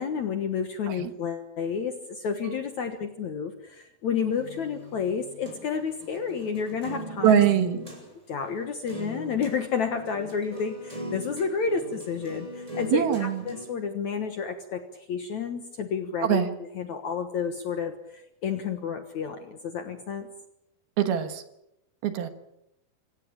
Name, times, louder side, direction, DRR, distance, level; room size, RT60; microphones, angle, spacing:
voice 1, 0.0-7.4 8.3-16.4 16.8-20.3, left 6 dB, 60° left, 7 dB, 2.1 m, -30 dB
sound 1, 4.3-8.0 8.4-8.5 8.9-9.6 9.9-13.7, equal, 5° right, 6.9 m, -40 dB
voice 2, 7.2-7.8 12.9-13.4 16.2-16.5 21.0-21.4 22.0-22.3, right 10 dB, 70° right, 9 dB, 3.1 m, -23 dB
26.0 x 16.0 x 8.8 m, 0.84 s
omnidirectional pair, 5.0 m